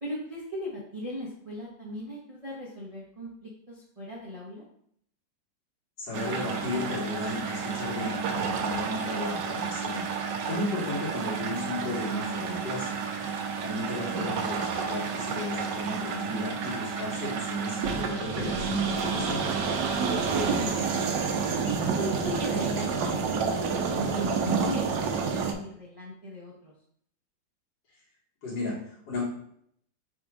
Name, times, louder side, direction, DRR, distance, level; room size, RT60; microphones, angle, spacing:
voice 1, 0.0-4.6 13.6-13.9 20.1-21.2 21.6-23.5 23.9-26.7, left 1 dB, 30° right, -7 dB, 0.6 m, -37 dB
voice 2, 6.0-10.0 10.5-12.9 13.6-19.4 28.4-29.2, left 1 dB, 75° left, -6 dB, 2.1 m, -34 dB
sound 1, 6.1-25.5, right 5 dB, 75° right, 1.2 m, -30 dB
4.3 x 2.4 x 4.6 m, 0.68 s
omnidirectional pair, 2.0 m